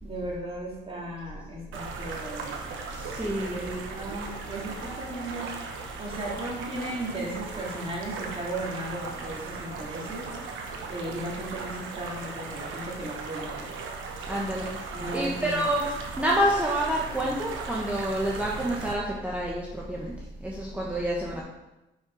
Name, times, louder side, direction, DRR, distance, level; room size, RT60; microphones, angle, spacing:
voice 1, 0.0-2.8 3.4-5.5 6.0-10.3 10.9-13.8 14.9-15.7, right 1 dB, 30° right, -4 dB, 2.4 m, -36 dB
sound 1, 1.7-18.9, right 4 dB, 80° right, 1.0 m, -38 dB
voice 2, 2.9-3.8 14.3-14.8 15.1-15.8 16.2-20.1 20.4-21.4, right 1 dB, 5° right, -4 dB, 1.1 m, -28 dB
5.7 x 5.4 x 5.2 m, 0.98 s
cardioid pair, 90°, 20 cm